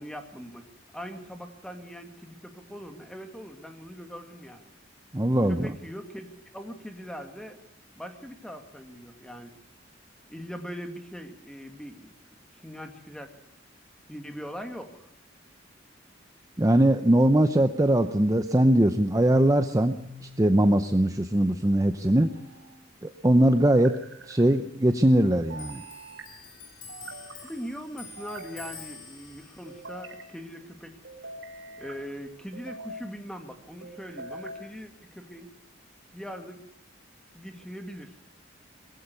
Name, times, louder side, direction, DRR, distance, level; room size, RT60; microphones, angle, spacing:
voice 1, 0.0-4.7 5.5-7.6 8.0-9.5 10.3-12.1 12.6-13.3 14.1-15.1 27.4-30.9 31.8-35.5 36.1-36.6 37.3-38.2, equal, 5° left, 5 dB, 2.2 m, -41 dB
voice 2, 5.1-5.7 16.6-19.9 20.4-22.3 23.0-24.0 24.3-25.8, right 1 dB, 20° right, 8 dB, 0.8 m, -21 dB
sound 1, 20.0-20.7 22.0-22.8 23.6-24.4 25.5-26.3 26.9-27.5 28.2-29.0 29.7-30.3 31.0-32.0 32.5-33.1 33.8-34.6, right 1 dB, 75° right, 4.5 m, -44 dB
Clock, 25.6-32.6 32.9-34.2 34.4-35.3, left 5 dB, 75° left, 4.4 m, -49 dB
21.0 x 16.0 x 8.3 m, 0.71 s
head